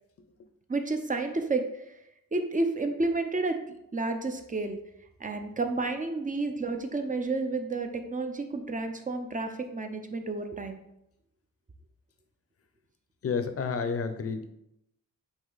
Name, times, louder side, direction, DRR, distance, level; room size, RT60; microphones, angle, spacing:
voice 1, 0.7-1.7 2.3-3.6 3.9-4.8 5.2-10.8, right 3 dB, 25° right, 6 dB, 0.7 m, -30 dB
voice 2, 13.2-14.5, left 5 dB, 45° left, 9 dB, 0.7 m, -30 dB
8.0 x 2.9 x 4.0 m, 0.82 s
cardioid pair, 110°, 34 cm